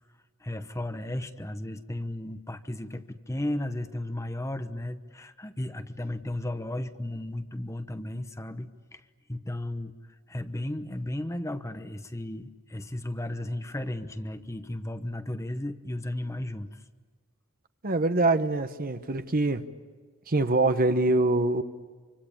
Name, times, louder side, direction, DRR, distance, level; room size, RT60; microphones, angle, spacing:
voice 1, 0.4-9.0 9.3-9.9 10.3-16.8, left 1 dB, 15° left, 9 dB, 1.0 m, -34 dB
voice 2, 17.8-19.6 20.3-21.6, right 2 dB, 45° right, 9 dB, 1.2 m, -24 dB
26.5 x 25.0 x 8.8 m, 1.5 s
head